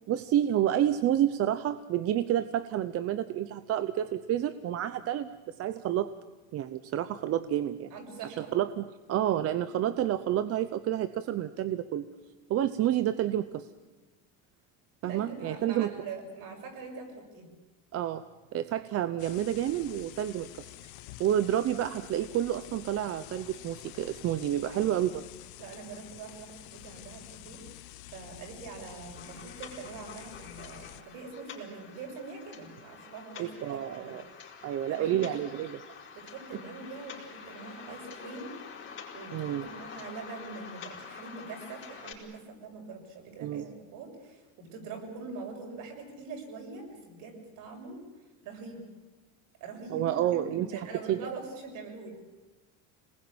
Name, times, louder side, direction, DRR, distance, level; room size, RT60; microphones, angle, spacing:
voice 1, 0.1-5.3 5.6-6.1 6.5-7.9 8.4-12.0 12.5-13.7 15.0-15.9 17.9-18.2 18.5-20.7 21.2-25.2 33.4-34.2 34.6-35.8 39.3-39.7 43.4-43.7 49.9-51.3, right 11 dB, 40° right, 11 dB, 0.7 m, -29 dB
voice 2, 7.9-8.5 15.1-17.5 25.6-27.6 28.1-34.1 34.4-34.5 34.9-35.4 36.1-38.5 39.1-48.0 48.4-48.8 49.6-52.1, right 4 dB, 60° right, 2 dB, 6.9 m, -43 dB
sound 1, 19.2-31.0, left 15 dB, 70° left, 1.2 m, -48 dB
sound 2, 29.1-42.1, left 6 dB, 30° left, 4.7 m, -47 dB
27.0 x 20.0 x 8.6 m, 1.2 s
cardioid pair, 170°, 38 cm